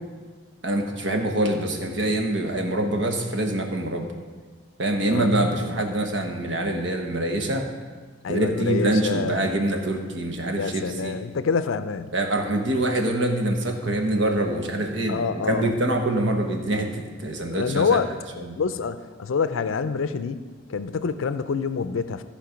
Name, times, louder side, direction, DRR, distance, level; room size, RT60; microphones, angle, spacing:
voice 1, 0.6-4.1 4.8-7.7 8.3-11.2 12.1-18.0 18.4-18.6, right 1 dB, 65° right, 4 dB, 1.2 m, -25 dB
voice 2, 8.2-9.4 10.5-12.1 15.1-15.7 17.5-22.2, left 5 dB, 80° left, 12 dB, 0.4 m, -27 dB
14.5 x 5.1 x 5.1 m, 1.4 s
head